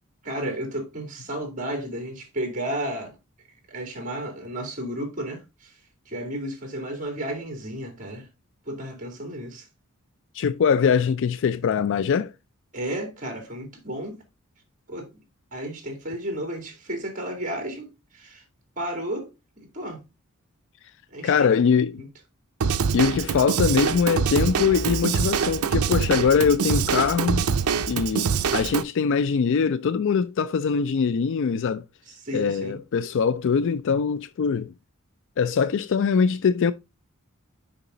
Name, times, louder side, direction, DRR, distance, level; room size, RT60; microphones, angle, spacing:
voice 1, 0.2-3.1 3.7-5.7 6.1-8.3 8.7-9.6 12.7-14.2 14.9-15.1 15.5-18.4 18.8-19.3 19.6-20.0 21.1-21.6 22.0-22.1 32.2-32.8, right 1 dB, 40° right, 2.8 m, -33 dB
voice 2, 10.3-12.3 21.2-22.0 22.9-27.5 27.9-31.8 32.3-34.7 35.4-36.7, left 6 dB, 60° left, 0.4 m, -22 dB
Drum kit / Drum, 22.6-28.8, right 6 dB, 80° right, 0.5 m, -24 dB
6.9 x 5.2 x 3.8 m
head